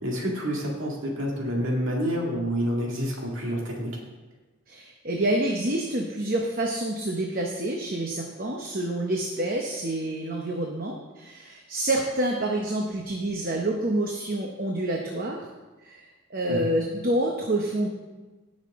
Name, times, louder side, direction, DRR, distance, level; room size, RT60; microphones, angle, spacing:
voice 1, 0.0-3.9 16.5-16.6, equal, 70° right, -2 dB, 2.1 m, -28 dB
voice 2, 4.7-15.5 15.8-17.9, right 1 dB, 45° right, 1 dB, 0.9 m, -28 dB
17.0 x 6.5 x 3.6 m, 1.2 s
head